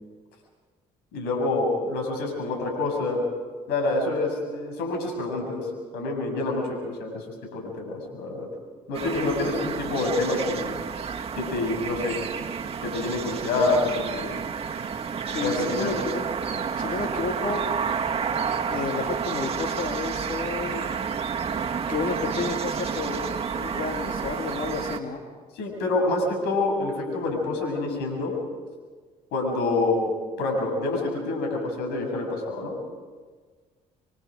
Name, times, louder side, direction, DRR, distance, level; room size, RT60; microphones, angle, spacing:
voice 1, 1.1-3.2 3.7-5.7 5.9-7.2 7.5-8.5 8.9-10.8 11.3-12.2 12.8-14.4 15.4-15.9 25.6-28.3 29.3-30.1 30.4-32.7, left 2 dB, 85° left, 2 dB, 7.1 m, -27 dB
sound 1, 8.9-25.0, right 6 dB, 35° right, 1.9 m, -30 dB
voice 2, 15.3-16.2 16.8-17.7 18.7-20.9 21.9-25.2, left 4 dB, 55° left, 3 dB, 2.7 m, -31 dB
28.5 x 23.0 x 5.1 m, 1.5 s
supercardioid pair, 65°, 17 cm